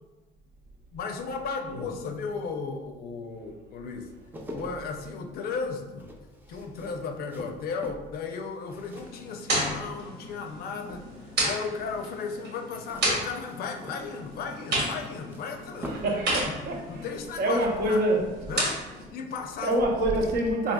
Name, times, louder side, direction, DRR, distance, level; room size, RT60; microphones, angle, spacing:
voice 1, 0.9-4.1 4.5-6.1 6.5-16.0 16.5-16.6 16.9-18.0 18.5-19.8, left 5 dB, 65° left, 5 dB, 0.5 m, -35 dB
sound 1, 4.0-10.5 10.8-11.4 12.7-16.2 16.5-16.7, equal, 10° right, 0.5 m, -44 dB
sound 2, 8.9-19.0, right 1 dB, 75° right, 1.3 m, -33 dB
voice 2, 15.9-17.1 17.4-18.2 19.6-20.7, right 1 dB, 60° right, 1 dB, 0.7 m, -26 dB
4.1 x 2.8 x 2.2 m, 1.2 s
cardioid pair, 110°, 17 cm